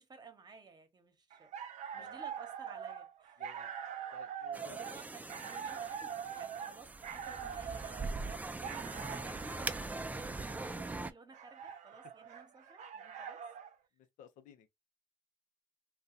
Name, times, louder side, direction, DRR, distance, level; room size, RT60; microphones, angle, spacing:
voice 1, 0.0-3.4 4.6-13.4, right 4 dB, 30° right, 1.0 m, -56 dB
sound 1, 1.3-13.7, right 8 dB, 60° right, 0.5 m, -44 dB
voice 2, 3.4-3.7 4.1-4.9 11.7-11.8 13.9-14.7, left 8 dB, 75° left, 0.6 m, -58 dB
sound 2, 4.5-11.1, right 3 dB, 10° right, 0.4 m, -42 dB
2.3 x 2.3 x 3.9 m
cardioid pair, 85°, 13 cm